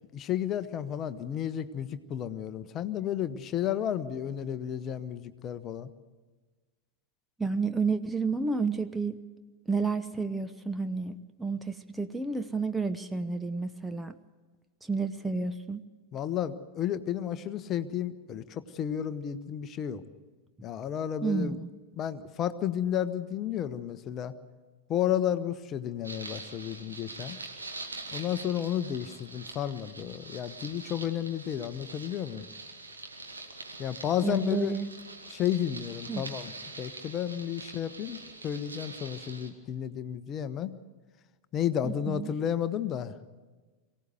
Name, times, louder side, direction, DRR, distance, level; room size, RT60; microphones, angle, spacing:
voice 1, 0.1-5.9 16.1-20.0 20.6-21.6 22.0-24.3 24.9-27.4 28.1-32.5 33.8-34.7 35.3-40.8 41.5-43.2, left 10 dB, 30° left, 12 dB, 0.9 m, -32 dB
voice 2, 7.4-9.1 9.7-11.1 11.4-14.1 14.8-15.8 21.2-21.7 34.2-34.9 36.1-36.2 41.8-42.3, right 4 dB, 5° right, 9 dB, 0.7 m, -30 dB
sound 1, 26.0-39.5, right 2 dB, 80° right, 2.1 m, -44 dB
23.0 x 17.0 x 8.0 m, 1.3 s
figure-of-eight pair, 90°, 0 cm